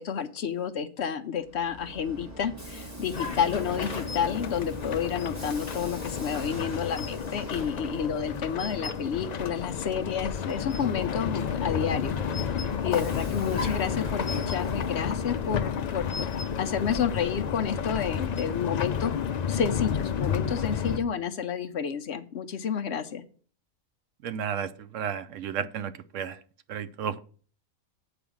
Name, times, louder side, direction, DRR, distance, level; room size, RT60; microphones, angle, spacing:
voice 1, 0.0-12.6 12.8-16.3 16.6-19.1 19.5-23.2, left 7 dB, 60° left, 7 dB, 0.8 m, -30 dB
Vehicle, 1.4-9.9 11.6-15.5, equal, 10° right, 1.9 m, -40 dB
sound 1, 3.1-21.0, left 7 dB, 80° left, 0.3 m, -31 dB
voice 2, 24.2-26.4 26.7-27.2, right 8 dB, 70° right, 13 dB, 0.9 m, -33 dB
8.0 x 5.0 x 7.0 m, 0.44 s
omnidirectional pair, 1.4 m